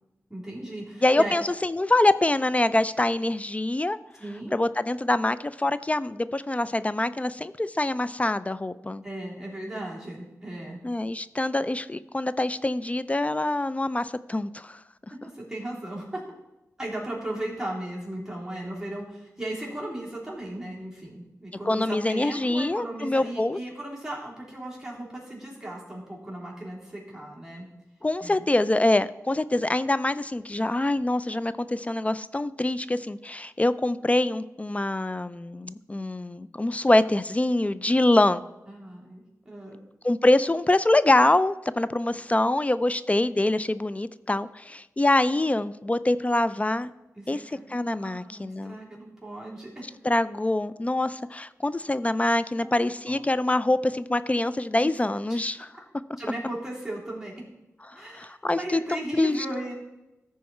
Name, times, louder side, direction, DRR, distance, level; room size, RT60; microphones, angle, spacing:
voice 1, 0.3-1.4 4.2-4.5 9.0-10.8 15.2-16.2 16.8-27.7 28.2-28.4 38.7-39.8 47.1-47.6 48.0-50.0 52.6-53.2 54.8-54.9 55.3-55.4 56.2-57.3 57.9-59.7, right 1 dB, 10° right, -5 dB, 3.4 m, -36 dB
voice 2, 1.0-4.0 4.5-9.0 10.8-14.8 21.7-23.6 28.0-38.4 40.0-46.9 47.3-47.4 47.7-48.8 50.0-55.7 57.9-59.5, left 2 dB, 25° left, 15 dB, 0.3 m, -25 dB
14.0 x 4.7 x 4.2 m, 0.98 s
cardioid pair, 60°, 6 cm